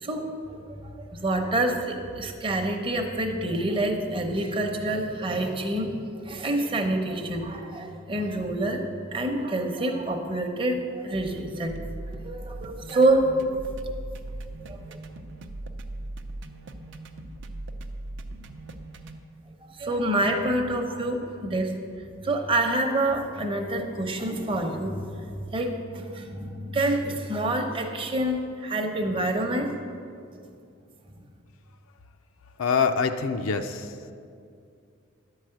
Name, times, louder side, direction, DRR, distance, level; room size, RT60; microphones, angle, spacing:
voice 1, 0.0-5.9 6.2-8.9 9.1-11.8 12.2-13.6 14.7-14.9 19.7-29.7, right 1 dB, 25° right, 3 dB, 0.8 m, -27 dB
sound 1, 11.1-19.2, right 1 dB, 60° right, 0.6 m, -39 dB
voice 2, 32.6-34.0, left 5 dB, 80° left, 7 dB, 0.5 m, -25 dB
11.0 x 4.8 x 7.7 m, 2.4 s
head